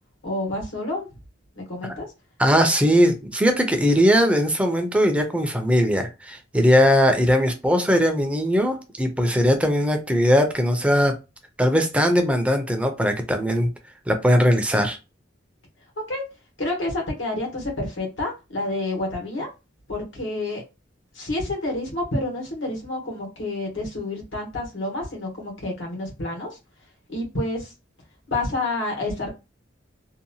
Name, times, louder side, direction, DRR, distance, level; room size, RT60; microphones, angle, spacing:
voice 1, 0.2-1.1 1.5-2.1 16.1-16.2 16.6-19.5 19.9-20.6 21.1-26.6 27.1-27.7 28.3-29.3, left 2 dB, 85° left, 1.2 m, -29 dB
voice 2, 2.4-11.2 11.6-13.7 14.1-15.0, equal, 5° right, 0.5 m, -19 dB
2.7 x 2.2 x 2.7 m
head